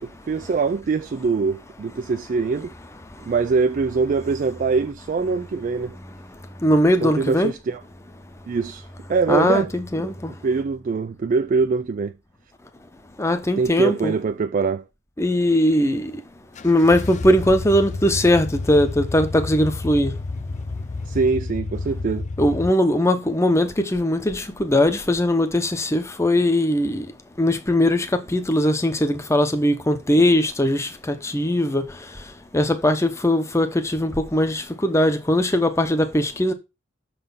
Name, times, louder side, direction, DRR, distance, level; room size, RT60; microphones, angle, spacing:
voice 1, 0.0-2.7 3.2-6.0 7.0-7.8 8.5-9.7 10.4-12.1 13.6-14.8 21.1-22.3, right 4 dB, 40° right, 0.3 m, -23 dB
voice 2, 6.6-7.5 9.3-10.3 13.2-14.2 15.2-16.1 16.6-20.1 22.4-27.1 27.4-31.8 32.5-36.5, left 1 dB, 15° left, 0.8 m, -20 dB
sound 1, 16.6-22.7, left 3 dB, 35° left, 0.4 m, -30 dB
6.5 x 4.2 x 5.4 m
head